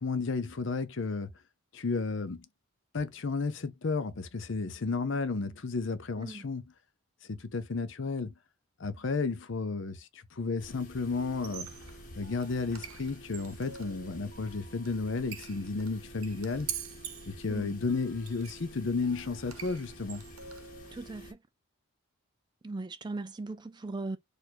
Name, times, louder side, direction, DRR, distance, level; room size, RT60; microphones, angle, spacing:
voice 1, 0.0-1.3 1.7-2.5 2.9-6.6 7.3-8.3 8.8-11.7 12.2-16.7 17.3-20.2, left 4 dB, 60° left, 0.6 m, -33 dB
sound 1, 10.6-21.3, equal, 40° left, 1.0 m, -49 dB
Squeak, 11.3-20.9, right 8 dB, 80° right, 0.9 m, -46 dB
voice 2, 20.9-21.4 22.6-24.2, right 2 dB, 20° right, 0.4 m, -38 dB
4.5 x 2.5 x 4.2 m
head